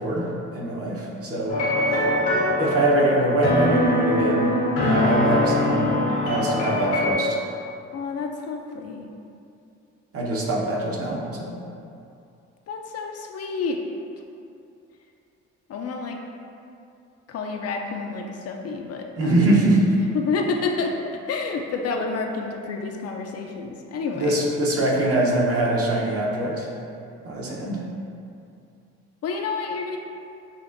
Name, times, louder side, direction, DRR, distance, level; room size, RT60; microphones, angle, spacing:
voice 1, 0.0-2.0 2.3-4.6 4.8-6.0 6.2-7.4 10.1-11.6 19.2-20.0 24.1-26.7 27.2-27.8, right 1 dB, 50° right, -3 dB, 1.0 m, -23 dB
sound 1, 1.5-7.1, left 1 dB, 90° left, 1.2 m, -22 dB
voice 2, 1.8-2.2 7.9-9.1 12.7-13.8 15.7-16.2 17.3-19.3 20.1-24.4 29.2-30.0, left 4 dB, 50° left, 2 dB, 0.5 m, -29 dB
6.8 x 2.5 x 2.6 m, 2.6 s
supercardioid pair, 80°, 31 cm